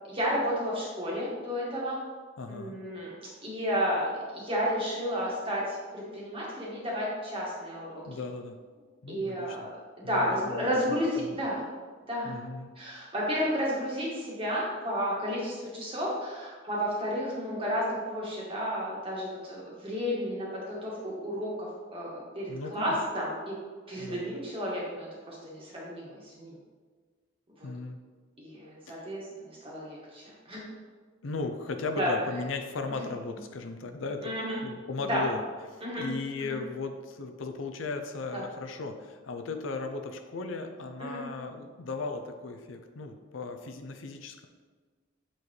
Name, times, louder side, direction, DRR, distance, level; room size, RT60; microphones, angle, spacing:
voice 1, 0.1-2.0 2.5-3.1 3.4-8.0 9.1-9.7 10.0-11.6 12.1-12.4 12.8-23.6 23.9-26.6 27.6-27.7 28.4-30.6 32.0-32.1 32.9-33.0 34.2-34.6 35.1-35.2 35.8-36.1 36.4-36.6 38.3-38.4 41.0-41.2, equal, 30° right, -5 dB, 1.8 m, -32 dB
voice 2, 2.4-2.8 8.1-8.6 9.0-9.7 10.0-10.7 11.1-11.3 12.2-12.7 22.5-22.9 24.0-24.3 27.6-28.0 28.9-29.1 31.2-34.3 34.6-35.4 35.7-44.5, left 3 dB, 75° left, 6 dB, 0.6 m, -37 dB
7.2 x 4.4 x 3.2 m, 1.5 s
head